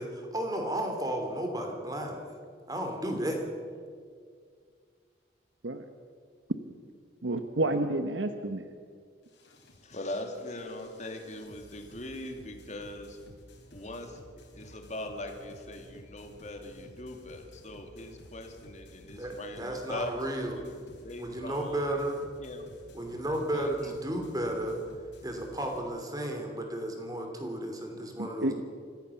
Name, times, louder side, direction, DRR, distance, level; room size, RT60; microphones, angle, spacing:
voice 1, 0.0-2.3 2.7-3.4 19.2-20.6 21.2-22.2 22.9-24.8 25.2-28.6, right 1 dB, 20° right, 3 dB, 2.9 m, -33 dB
voice 2, 7.2-8.7 28.2-28.6, right 2 dB, 85° right, 8 dB, 1.0 m, -30 dB
sound 1, 9.2-25.8, left 1 dB, 70° left, 3.9 m, -54 dB
voice 3, 9.8-13.4 13.7-21.9 22.4-22.7 23.4-23.9, left 1 dB, 40° left, 4 dB, 2.5 m, -41 dB
25.0 x 15.0 x 7.1 m, 2.1 s
head